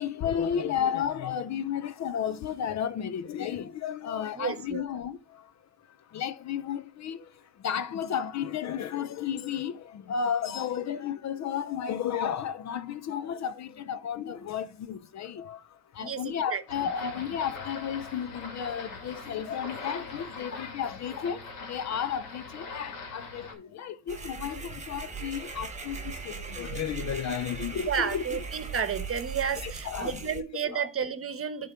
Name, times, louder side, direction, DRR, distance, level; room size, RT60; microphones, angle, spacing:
voice 1, 0.0-5.5 5.8-28.2 29.6-30.3 30.7-30.9, left 8 dB, 40° left, 0.5 m, -33 dB
voice 2, 4.3-4.8 16.0-16.6 27.8-31.7, right 7 dB, 30° right, 1.1 m, -31 dB
sound 1, 16.7-23.5, left 3 dB, 90° left, 2.4 m, -42 dB
sound 2, 24.1-30.4, right 5 dB, 15° right, 1.4 m, -39 dB
10.5 x 3.8 x 4.3 m
supercardioid pair, 85°, 42 cm